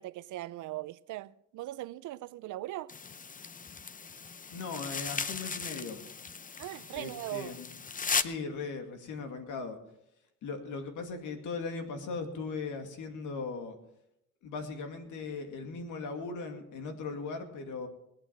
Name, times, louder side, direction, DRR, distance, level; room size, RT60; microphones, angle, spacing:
voice 1, 0.0-2.9 6.6-7.6, right 16 dB, 80° right, 0.6 m, -40 dB
sound 1, 2.9-8.2, left 5 dB, 25° left, 0.7 m, -37 dB
voice 2, 4.5-6.0 6.9-7.7 8.2-9.8 10.4-13.8 14.4-17.9, left 4 dB, 80° left, 2.4 m, -38 dB
20.5 x 8.8 x 5.9 m
cardioid pair, 90°, 30 cm